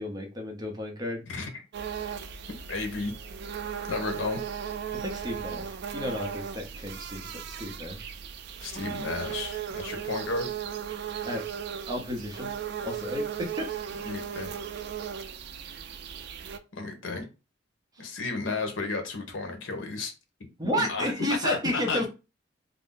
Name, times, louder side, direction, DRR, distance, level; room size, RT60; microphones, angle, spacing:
voice 1, 0.0-1.3 2.0-2.2 5.0-8.1 11.2-11.4 11.9-12.5 12.8-13.7 18.0-18.1 20.6-22.1, left 1 dB, 20° right, 0.7 m, -32 dB
sound 1, 1.7-16.6, right 8 dB, 60° right, 0.3 m, -37 dB
voice 2, 2.7-3.1 3.9-4.4 8.6-10.5 14.0-14.6 16.7-17.2 18.0-20.1 20.8-22.1, left 3 dB, 80° left, 0.8 m, -32 dB
2.5 x 2.1 x 3.6 m
head